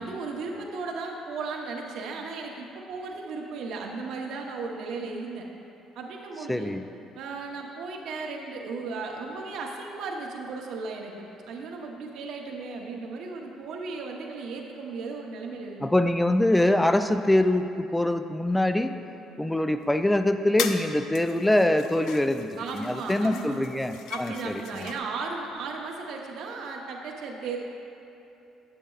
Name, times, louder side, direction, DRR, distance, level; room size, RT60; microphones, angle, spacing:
voice 1, 0.0-5.5 6.0-6.7 7.1-11.1 11.5-15.9 22.6-23.6 24.1-27.6, right 4 dB, 70° right, 1 dB, 0.8 m, -35 dB
voice 2, 6.5-6.8 15.8-19.0 19.4-24.9, left 1 dB, 10° left, 9 dB, 0.3 m, -24 dB
sound 1, 19.9-20.0 20.6-20.9 21.1-25.0, left 8 dB, 80° left, 0.4 m, -38 dB
10.0 x 7.3 x 2.3 m, 2.9 s
cardioid pair, 90°, 0 cm